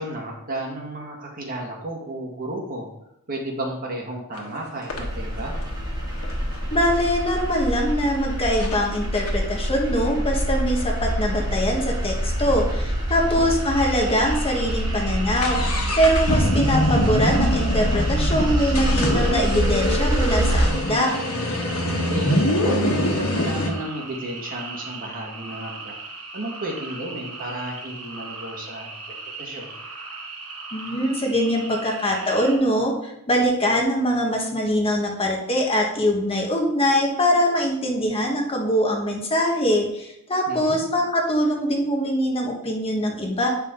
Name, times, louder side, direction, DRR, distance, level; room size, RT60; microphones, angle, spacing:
voice 1, 0.0-2.9 3.3-5.6 13.1-13.5 22.1-25.9 26.3-29.7 40.5-40.8, right 1 dB, 40° right, -1 dB, 1.8 m, -32 dB
sound 1, 4.3-4.5 4.9-7.5 8.1-8.2 8.6-8.8 9.1-12.8 13.1-13.2 13.4-13.5 14.1-14.3 14.6-23.7, left 1 dB, 75° left, 1.4 m, -25 dB
sound 2, 4.9-20.7, equal, 20° right, 2.0 m, -25 dB
voice 2, 6.7-21.1 30.7-43.5, equal, 25° left, 0 dB, 1.4 m, -23 dB
sound 3, 13.7-32.5, right 3 dB, 85° right, 2.2 m, -38 dB
8.8 x 5.6 x 3.9 m, 0.79 s
head